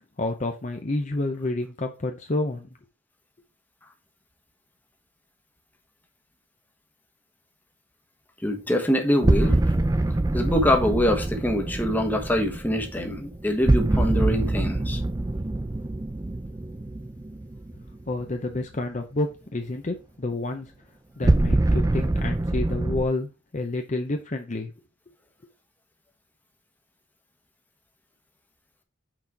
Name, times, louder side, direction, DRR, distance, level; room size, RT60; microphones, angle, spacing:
voice 1, 0.2-2.8 18.1-20.7 21.2-24.7, left 2 dB, 35° left, 0.7 m, -29 dB
voice 2, 8.4-9.6 10.3-15.0, equal, 10° left, 1.1 m, -24 dB
sound 1, 9.2-18.2 21.2-23.0, right 2 dB, 15° right, 0.4 m, -24 dB
6.0 x 4.3 x 4.6 m
head